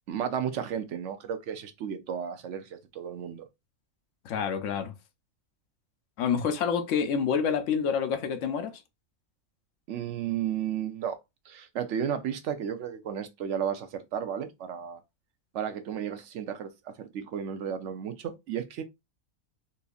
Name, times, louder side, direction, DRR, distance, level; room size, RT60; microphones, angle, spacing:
voice 1, 0.1-3.5 9.9-11.2 11.5-15.0 15.5-18.8, right 8 dB, 65° right, 0.9 m, -33 dB
voice 2, 4.2-4.9 6.2-8.7, left 7 dB, 70° left, 0.9 m, -27 dB
4.2 x 2.7 x 2.3 m
omnidirectional pair, 1.5 m